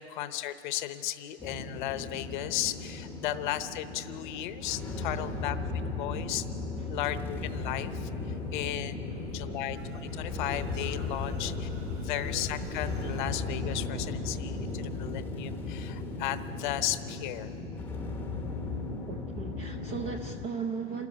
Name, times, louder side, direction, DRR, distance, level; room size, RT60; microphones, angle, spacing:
voice 1, 0.0-5.6 5.9-6.5 6.9-9.8 10.1-17.5, left 13 dB, 40° left, 12 dB, 0.9 m, -35 dB
sound 1, 1.4-20.5, left 3 dB, 5° left, 0.9 m, -36 dB
sound 2, 9.2-14.9, right 3 dB, 60° right, 6.3 m, -48 dB
voice 2, 19.1-21.1, right 5 dB, 15° right, 4 dB, 0.5 m, -36 dB
27.0 x 13.5 x 9.7 m, 3.0 s
hypercardioid pair, 155°, 35 cm